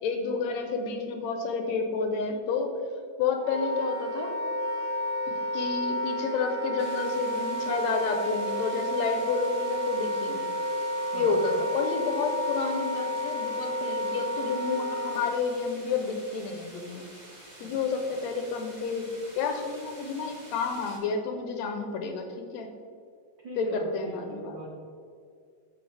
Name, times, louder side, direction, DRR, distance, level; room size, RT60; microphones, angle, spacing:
voice 1, 0.0-2.7 3.2-4.3 5.3-10.5 11.1-17.0 17.6-19.1 19.4-22.7 23.6-24.6, left 4 dB, 75° left, 4 dB, 1.9 m, -30 dB
Wind instrument woodwind instrument, 3.4-15.3, equal, 60° right, 2.1 m, -31 dB
sound 1, 6.8-21.0, right 1 dB, 30° right, 0.8 m, -49 dB
voice 2, 11.1-11.5 17.6-17.7 23.4-24.7, right 2 dB, 80° right, -1 dB, 1.0 m, -41 dB
13.5 x 5.5 x 3.4 m, 2.2 s
omnidirectional pair, 3.4 m